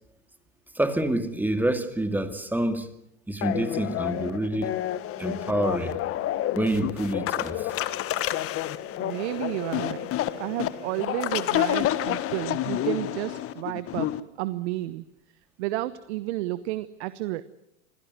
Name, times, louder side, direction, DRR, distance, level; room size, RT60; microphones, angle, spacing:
voice 1, 0.8-2.9 3.3-4.7 5.2-5.9 6.5-7.7, right 1 dB, 5° right, 8 dB, 2.4 m, -27 dB
sound 1, 3.4-14.2, left 13 dB, 35° left, 1.5 m, -29 dB
voice 2, 9.0-10.1 10.4-14.1 14.4-15.0 15.6-17.4, right 16 dB, 65° right, 14 dB, 1.2 m, -31 dB
26.0 x 16.5 x 9.7 m, 0.81 s
hypercardioid pair, 110°, 37 cm